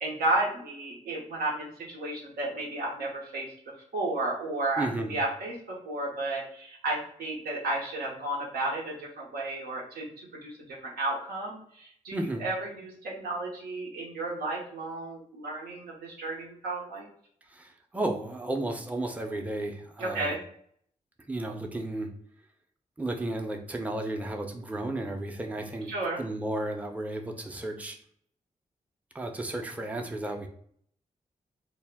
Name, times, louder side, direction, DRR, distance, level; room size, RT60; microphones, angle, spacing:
voice 1, 0.0-3.5 3.9-5.5 5.8-17.1 20.0-20.4 25.9-26.2, right 2 dB, 90° right, -4 dB, 0.7 m, -33 dB
voice 2, 4.8-5.2 12.1-12.4 17.5-20.3 21.3-22.1 23.0-25.9 26.2-28.0 29.1-30.5, right 1 dB, 10° right, 3 dB, 0.5 m, -33 dB
2.1 x 2.0 x 3.3 m, 0.62 s
supercardioid pair, 45°, 15 cm